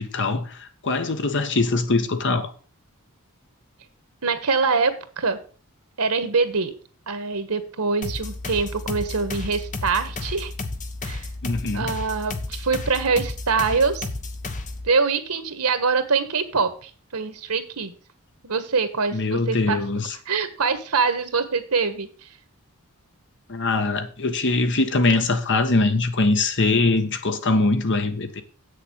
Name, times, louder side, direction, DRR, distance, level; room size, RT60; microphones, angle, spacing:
voice 1, 0.0-2.5 11.4-11.9 19.1-20.1 23.5-28.4, left 3 dB, 55° left, 1.3 m, -22 dB
voice 2, 4.2-5.4 6.0-6.7 7.1-10.5 11.0-11.3 11.7-14.0 14.8-17.9 18.4-19.8 20.3-22.3, right 4 dB, 90° right, 1.4 m, -24 dB
sound 1, 8.0-14.9, left 2 dB, 35° left, 1.1 m, -32 dB
8.4 x 6.7 x 6.4 m
head